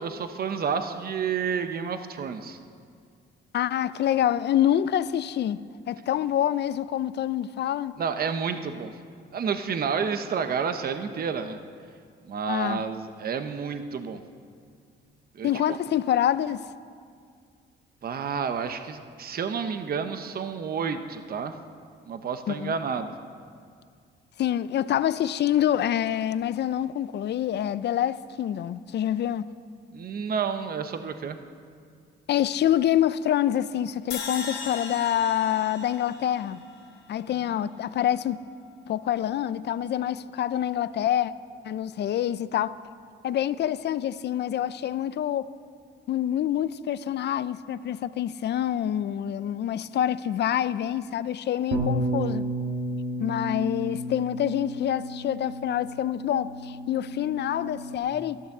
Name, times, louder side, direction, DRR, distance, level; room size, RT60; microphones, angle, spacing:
voice 1, 0.0-2.6 8.0-8.9 9.3-11.6 12.3-14.2 15.3-15.8 18.0-21.6 22.1-23.1 29.9-31.4 37.4-37.7, right 6 dB, 50° right, 0.9 m, -30 dB
voice 2, 3.5-5.6 5.9-8.0 12.5-12.8 15.4-16.7 22.5-22.7 24.4-29.5 32.3-36.6 37.1-38.4 38.9-41.3 41.6-42.7 43.2-45.5 46.1-52.5 53.2-58.4, left 11 dB, 60° left, 0.5 m, -26 dB
sound 1, 34.1-37.3, left 5 dB, 85° left, 3.2 m, -38 dB
Bass guitar, 51.7-58.0, right 1 dB, 75° right, 2.0 m, -32 dB
13.5 x 11.5 x 7.2 m
cardioid pair, 90°, 20 cm